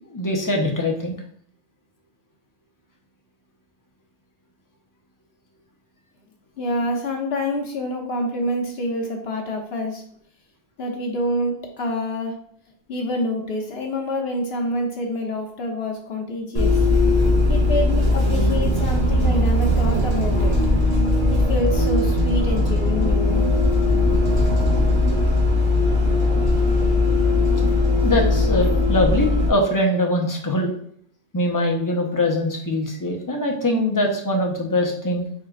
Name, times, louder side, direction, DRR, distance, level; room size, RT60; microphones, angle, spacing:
voice 1, 0.1-1.2 28.0-30.7 31.3-35.3, left 1 dB, 20° left, 1 dB, 0.7 m, -22 dB
voice 2, 6.6-10.0 10.8-12.3 12.9-16.8 17.5-20.6 21.3-23.5, left 1 dB, 75° left, 1 dB, 1.2 m, -27 dB
Bus, 16.5-29.5, left 2 dB, 35° right, 1.5 m, -19 dB
4.9 x 3.7 x 2.4 m, 0.64 s
omnidirectional pair, 1.0 m